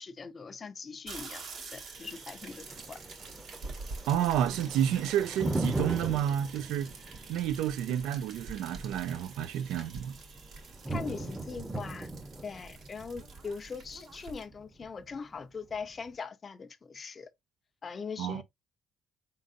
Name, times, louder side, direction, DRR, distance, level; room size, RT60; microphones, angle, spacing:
voice 1, 0.0-1.4 1.7-3.0 10.9-12.1 12.4-17.3 17.8-18.4, left 5 dB, 35° left, 0.5 m, -41 dB
sound 1, 1.1-14.4, right 3 dB, 65° right, 1.3 m, -46 dB
Thunder, 2.0-16.0, right 2 dB, 15° right, 0.7 m, -39 dB
voice 2, 4.1-6.9 7.3-10.2 18.2-18.4, right 10 dB, 85° right, 0.4 m, -30 dB
3.9 x 3.8 x 2.5 m
cardioid pair, 90°, 0 cm